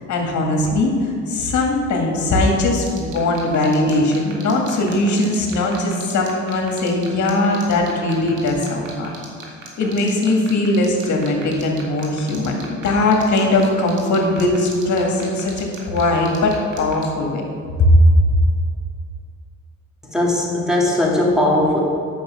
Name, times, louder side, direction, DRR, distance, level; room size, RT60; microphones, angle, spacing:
voice 1, 0.0-9.1 9.8-17.4 17.8-18.4, left 1 dB, 70° left, 1 dB, 2.1 m, -19 dB
sound 1, 2.9-17.0, right 7 dB, 85° right, 2.1 m, -37 dB
voice 2, 20.0-21.8, left 1 dB, ahead, -3 dB, 2.5 m, -18 dB
9.4 x 6.4 x 6.4 m, 2.4 s
cardioid pair, 90°, 30 cm